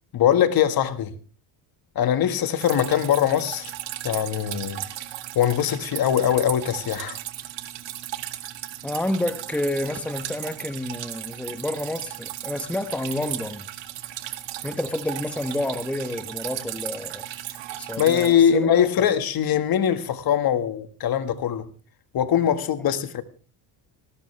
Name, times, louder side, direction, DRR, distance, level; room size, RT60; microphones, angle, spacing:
voice 1, 0.1-1.1 2.0-3.7 4.0-4.8 5.4-7.2 18.0-21.7 22.1-23.2, left 9 dB, 45° left, 1.7 m, -22 dB
Drip, 2.6-18.3, right 13 dB, 60° right, 2.0 m, -36 dB
voice 2, 8.8-13.6 14.6-17.3 17.8-18.7 19.0-19.1, left 1 dB, 5° left, 1.0 m, -29 dB
19.5 x 17.5 x 3.3 m
cardioid pair, 125°, 48 cm